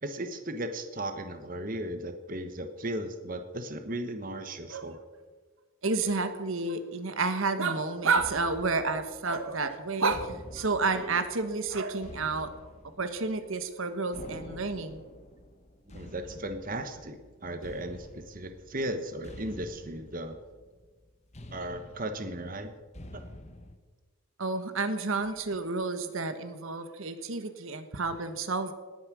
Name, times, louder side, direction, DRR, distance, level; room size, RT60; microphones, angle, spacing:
voice 1, 0.0-5.0 15.9-20.4 21.5-22.7 23.1-23.2, right 1 dB, 40° right, 8 dB, 1.1 m, -36 dB
voice 2, 5.8-12.5 13.0-15.0 24.4-28.7, right 3 dB, 70° right, 10 dB, 1.2 m, -30 dB
sound 1, 8.2-23.8, left 1 dB, 30° left, 1.1 m, -49 dB
18.5 x 9.8 x 6.2 m, 1.4 s
head